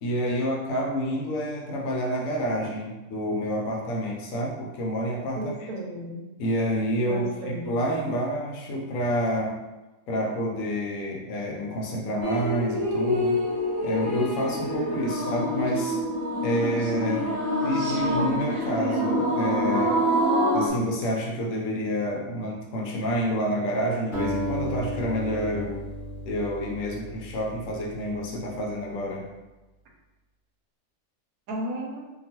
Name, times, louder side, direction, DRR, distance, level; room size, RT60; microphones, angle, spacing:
voice 1, 0.0-5.4 6.4-9.6 10.1-13.4 13.8-16.0 16.4-17.3 17.6-20.0 20.5-25.8 26.3-29.3, equal, 70° left, -2 dB, 1.0 m, -28 dB
voice 2, 5.4-6.2 7.1-7.8 31.5-32.1, right 1 dB, 85° right, -1 dB, 1.1 m, -33 dB
sound 1, 12.2-20.7, equal, 40° right, 0.9 m, -26 dB
Acoustic guitar, 24.1-28.6, equal, 40° left, 1.0 m, -34 dB
2.9 x 2.3 x 2.8 m, 1.1 s
omnidirectional pair, 1.5 m